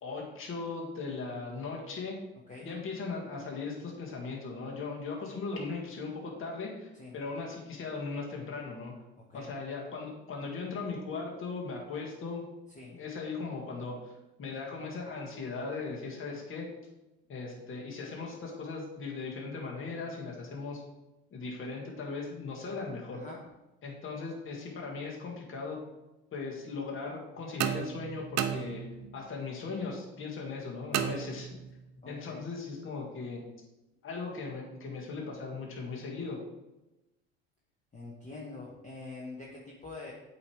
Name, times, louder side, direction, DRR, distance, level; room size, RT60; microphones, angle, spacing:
voice 1, 0.0-2.2 2.6-8.9 9.3-12.5 12.9-14.1 14.4-16.7 17.3-20.8 21.3-23.2 23.8-25.8 26.3-28.8 29.1-31.5 32.1-33.4 34.0-36.4, left 4 dB, 35° left, -1 dB, 1.8 m, -38 dB
voice 2, 9.2-9.5 12.7-13.0 23.1-23.4 32.0-32.5 37.9-40.1, left 3 dB, 20° left, -3 dB, 1.3 m, -45 dB
sound 1, 27.6-29.2 30.9-31.9, right 10 dB, 50° right, 0.7 m, -33 dB
8.2 x 3.2 x 4.9 m, 1.0 s
hypercardioid pair, 70°, 34 cm